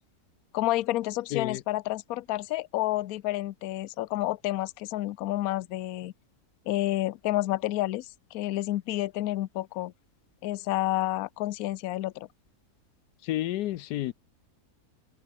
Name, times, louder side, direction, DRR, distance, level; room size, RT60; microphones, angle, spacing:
voice 1, 0.5-6.1 6.7-9.9 10.4-12.3, left 16 dB, 70° left, 1.1 m, -30 dB
voice 2, 1.3-1.6 13.2-14.1, left 14 dB, 90° left, 1.2 m, -30 dB
omnidirectional pair, 1.7 m